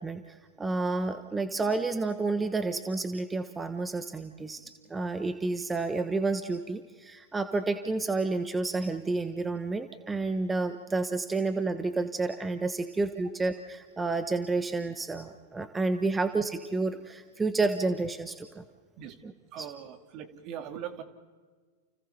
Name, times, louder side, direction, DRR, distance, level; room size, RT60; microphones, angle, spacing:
voice 1, 0.0-4.6 4.9-18.6 19.2-19.3 19.6-19.7, right 3 dB, 15° right, 9 dB, 1.2 m, -30 dB
voice 2, 19.5-21.0, right 9 dB, 45° right, 8 dB, 2.1 m, -40 dB
30.0 x 30.0 x 3.4 m, 1.4 s
hypercardioid pair, 100°, 0 cm